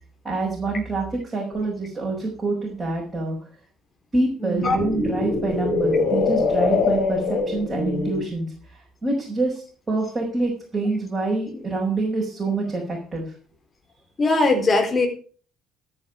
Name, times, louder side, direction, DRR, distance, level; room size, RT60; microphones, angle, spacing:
voice 1, 0.2-3.4 4.1-13.3, right 2 dB, 25° right, -3 dB, 5.8 m, -26 dB
sound 1, 1.5-1.6 4.5-8.3, left 4 dB, 45° left, 3.6 m, -23 dB
voice 2, 4.4-4.8 14.2-15.1, left 2 dB, 30° left, 3 dB, 4.0 m, -20 dB
12.5 x 10.0 x 5.1 m, 0.42 s
figure-of-eight pair, 50°, 0 cm